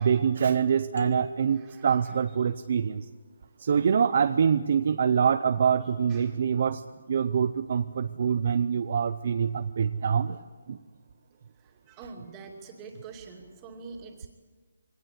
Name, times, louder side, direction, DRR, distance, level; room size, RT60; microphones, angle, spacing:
voice 1, 0.0-3.0 3.6-6.8 7.1-10.4 10.7-10.8, right 7 dB, 45° right, 10 dB, 0.6 m, -25 dB
sound 1, 1.0-2.9, equal, 75° left, 3.4 m, -41 dB
voice 2, 1.5-2.2 5.8-6.4 11.6-14.3, right 4 dB, 15° right, 2 dB, 2.5 m, -46 dB
23.0 x 18.5 x 8.3 m, 1.3 s
hypercardioid pair, 170°, 0 cm